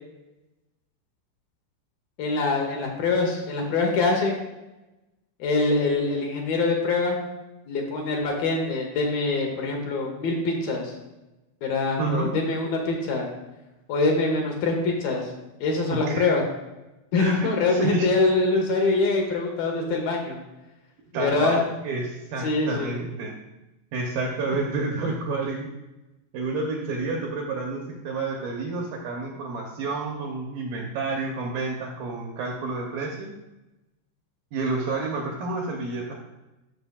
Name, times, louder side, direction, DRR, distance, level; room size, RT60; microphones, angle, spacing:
voice 1, 2.2-4.4 5.4-7.2 7.7-10.9 11.6-13.3 13.9-15.3 15.6-16.5 17.1-20.4 21.1-21.6 22.4-23.0, left 3 dB, 70° left, 1 dB, 2.4 m, -24 dB
voice 2, 12.0-12.3 15.9-16.3 17.2-18.1 21.1-23.3 23.9-25.7 26.3-33.3 34.5-36.1, right 3 dB, 75° right, 0 dB, 2.1 m, -29 dB
13.0 x 6.1 x 2.3 m, 1.0 s
omnidirectional pair, 4.9 m